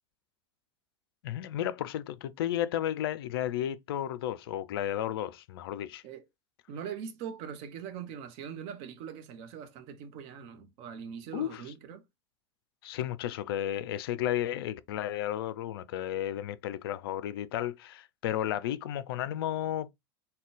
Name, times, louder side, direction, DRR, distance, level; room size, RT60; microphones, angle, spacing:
voice 1, 1.2-6.0 11.3-11.6 12.8-19.9, left 11 dB, 60° left, 0.4 m, -33 dB
voice 2, 6.7-12.0, right 8 dB, 50° right, 0.8 m, -42 dB
3.8 x 2.2 x 3.4 m
figure-of-eight pair, 80°, 14 cm